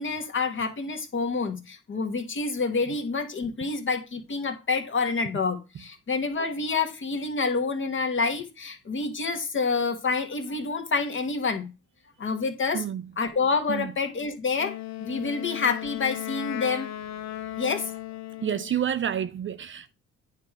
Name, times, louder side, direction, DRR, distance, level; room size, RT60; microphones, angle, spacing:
voice 1, 0.0-11.7 12.2-12.8 13.2-16.9 17.6-18.0, left 4 dB, 40° left, 1.4 m, -28 dB
Wind instrument woodwind instrument, 14.6-18.8, left 13 dB, 65° left, 0.6 m, -36 dB
voice 2, 18.4-19.9, right 9 dB, 40° right, 0.5 m, -29 dB
9.1 x 3.3 x 4.8 m
cardioid pair, 90°, 30 cm